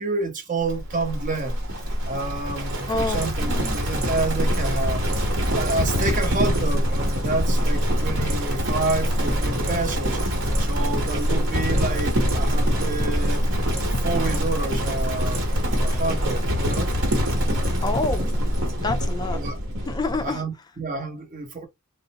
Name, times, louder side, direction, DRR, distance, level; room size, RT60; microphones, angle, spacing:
voice 1, 0.0-1.6 2.0-5.1 5.5-13.4 14.0-15.5 15.8-16.9 19.3-19.6 20.2-21.7, right 3 dB, 35° right, 0.8 m, -29 dB
Livestock farm animals working animals, 0.7-20.3, equal, 60° right, 1.1 m, -24 dB
voice 2, 2.9-3.8 17.8-18.3 18.8-19.4 19.9-20.4, left 3 dB, 20° left, 0.4 m, -28 dB
3.7 x 2.0 x 2.8 m
head